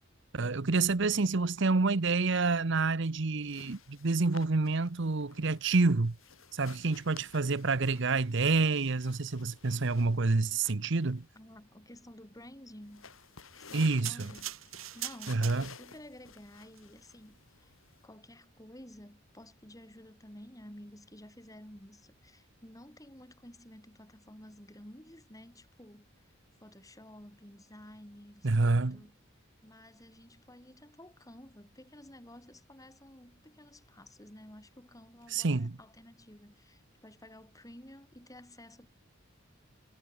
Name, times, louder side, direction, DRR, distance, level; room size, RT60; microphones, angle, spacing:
voice 1, 0.3-6.2 6.5-11.2 13.7-14.3 15.3-15.7 28.4-29.0 35.3-35.8, right 3 dB, 60° right, 0.9 m, -28 dB
sound 1, 3.5-18.1, left 5 dB, 80° left, 6.6 m, -54 dB
voice 2, 11.3-13.1 13.6-17.7 18.0-26.3 26.6-29.2 29.6-38.9, left 1 dB, 15° left, 4.8 m, -52 dB
sound 2, 14.1-16.0 16.7-16.8, right 13 dB, 85° right, 7.0 m, -42 dB
head